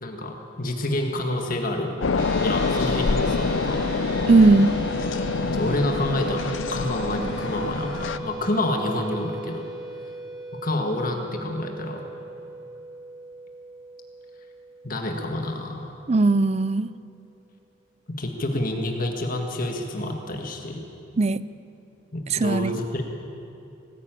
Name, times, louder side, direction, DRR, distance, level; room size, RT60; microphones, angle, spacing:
voice 1, 0.0-2.0 2.4-3.9 5.5-6.4 6.7-9.7 10.6-12.0 14.8-15.9 18.2-20.8 22.1-23.0, left 1 dB, 45° left, 3 dB, 1.8 m, -28 dB
sound 1, 2.0-8.2, left 4 dB, 80° left, 0.6 m, -26 dB
sound 2, 2.2-15.8, right 1 dB, 55° right, 4.7 m, -38 dB
voice 2, 4.3-4.7 16.1-16.9 21.2-21.4 22.3-22.8, right 3 dB, 35° right, 17 dB, 0.4 m, -18 dB
19.0 x 15.0 x 9.2 m, 2.7 s
head